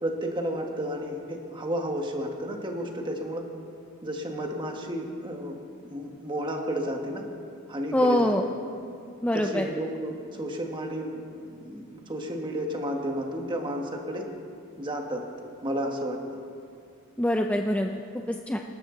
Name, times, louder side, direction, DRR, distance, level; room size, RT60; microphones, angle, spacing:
voice 1, 0.0-3.4 4.0-7.2 7.7-8.3 9.3-14.3 14.8-15.2 15.6-16.2, equal, 20° right, 2 dB, 1.6 m, -32 dB
voice 2, 7.9-8.4 9.2-9.7 17.2-18.0 18.3-18.6, left 1 dB, 5° left, 3 dB, 0.5 m, -24 dB
26.0 x 13.0 x 3.9 m, 2.4 s
head